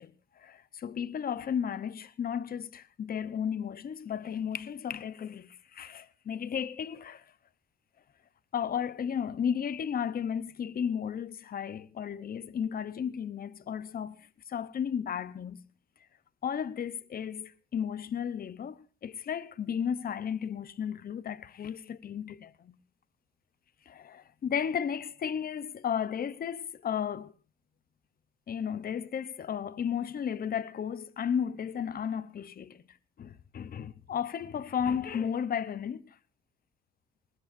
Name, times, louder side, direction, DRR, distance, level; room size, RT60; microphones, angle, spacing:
voice 1, 0.0-7.3 8.5-15.6 16.4-22.7 23.9-27.3 28.5-36.2, left 8 dB, 50° left, 0.9 m, -34 dB
20.5 x 20.5 x 2.7 m
cardioid pair, 90°, 20 cm